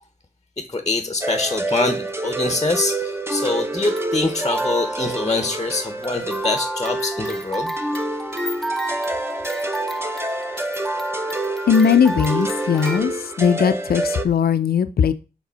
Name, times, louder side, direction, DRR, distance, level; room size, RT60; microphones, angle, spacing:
voice 1, 0.6-7.7, left 3 dB, 20° left, 8 dB, 0.8 m, -24 dB
sound 1, 1.2-14.3, right 2 dB, 15° right, 0.8 m, -28 dB
sound 2, 3.8-13.0, right 1 dB, ahead, 0.4 m, -31 dB
voice 2, 11.7-15.1, left 7 dB, 65° left, 10 dB, 0.5 m, -18 dB
5.0 x 3.7 x 5.6 m, 0.31 s
cardioid pair, 65°, 17 cm